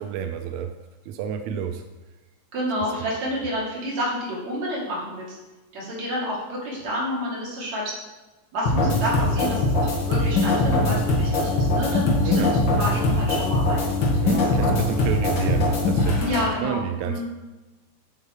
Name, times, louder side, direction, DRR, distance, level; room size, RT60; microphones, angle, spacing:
voice 1, 0.0-0.7 1.1-1.8 12.3-12.5 14.2-17.2, right 8 dB, 80° right, 7 dB, 1.7 m, -29 dB
voice 2, 2.5-5.3 5.7-7.9 8.5-14.7 16.2-17.2, equal, 60° right, -5 dB, 3.7 m, -29 dB
sound 1, 8.7-16.5, left 2 dB, 50° left, 1.6 m, -22 dB
8.1 x 7.3 x 4.5 m, 1.1 s
omnidirectional pair, 3.6 m